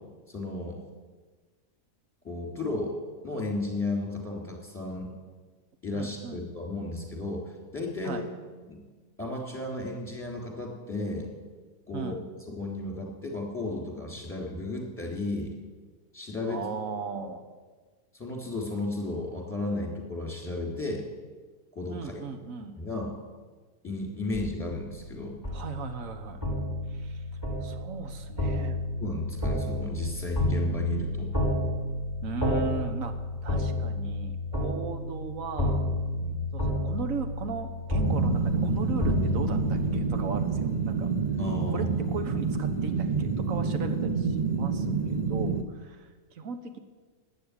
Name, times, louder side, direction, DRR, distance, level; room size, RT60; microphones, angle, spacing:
voice 1, 0.3-0.8 2.2-3.0 3.2-5.1 5.8-8.3 8.7-8.8 9.2-11.3 11.9-12.1 12.5-15.6 16.1-16.6 17.1-17.3 18.1-21.0 21.7-22.2 22.8-23.1 23.8-25.4 29.0-31.3 36.2-36.5 41.4-41.9, left 2 dB, 10° left, 0 dB, 3.4 m, -33 dB
voice 2, 5.9-6.4 8.0-8.3 11.9-12.2 16.4-17.4 21.9-22.8 25.5-26.4 26.9-27.2 27.6-28.8 32.2-35.9 36.5-41.1 41.7-46.8, right 5 dB, 60° right, 8 dB, 1.6 m, -37 dB
sound 1, 24.3-40.1, left 1 dB, 10° right, 4.8 m, -31 dB
sound 2, 38.0-45.6, right 5 dB, 35° right, 0.9 m, -28 dB
12.0 x 9.1 x 9.8 m, 1.4 s
omnidirectional pair, 1.6 m